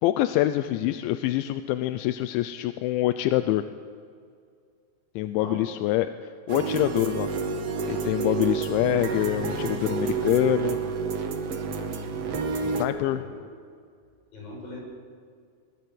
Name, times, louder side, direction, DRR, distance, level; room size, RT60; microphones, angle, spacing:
voice 1, 0.0-3.6 5.2-6.1 6.5-7.3 7.9-10.8 12.6-13.2, left 14 dB, 80° left, 10 dB, 2.8 m, -25 dB
sound 1, 6.5-12.9, right 5 dB, 80° right, 1.4 m, -29 dB
voice 2, 14.3-14.8, left 2 dB, 45° left, 0 dB, 7.9 m, -40 dB
22.5 x 21.0 x 7.9 m, 2.2 s
omnidirectional pair, 5.7 m